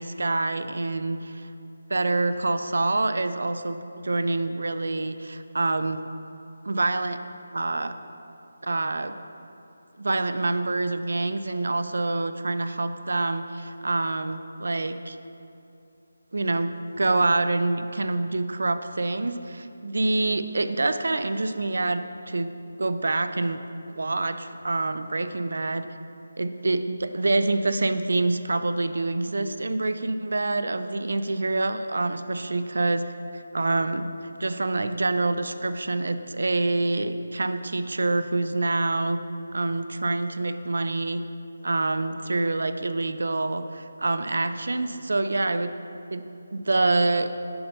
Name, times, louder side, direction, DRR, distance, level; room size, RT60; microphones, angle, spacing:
voice 1, 0.0-1.5 1.9-6.0 6.7-7.2 7.5-7.9 8.6-9.1 10.0-15.2 16.3-22.5 22.8-23.6 23.9-25.9 26.4-33.1 33.3-34.1 34.4-39.2 39.5-41.2 41.6-45.8 46.1-46.2 46.5-47.3, right 2 dB, 75° right, 10 dB, 0.3 m, -26 dB
6.9 x 3.3 x 5.5 m, 2.7 s
figure-of-eight pair, 165°, 0 cm